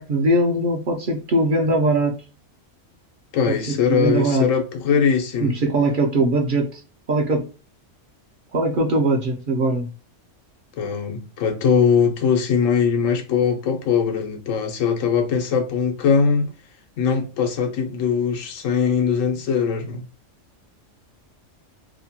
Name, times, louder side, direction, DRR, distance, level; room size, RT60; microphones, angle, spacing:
voice 1, 0.0-2.1 3.5-4.5 5.4-6.8 7.1-7.5 8.5-9.9, right 2 dB, 55° right, 0.6 m, -21 dB
voice 2, 3.3-5.6 10.8-16.5 17.0-20.0, left 6 dB, 90° left, 1.1 m, -21 dB
2.8 x 2.1 x 2.7 m
omnidirectional pair, 1.3 m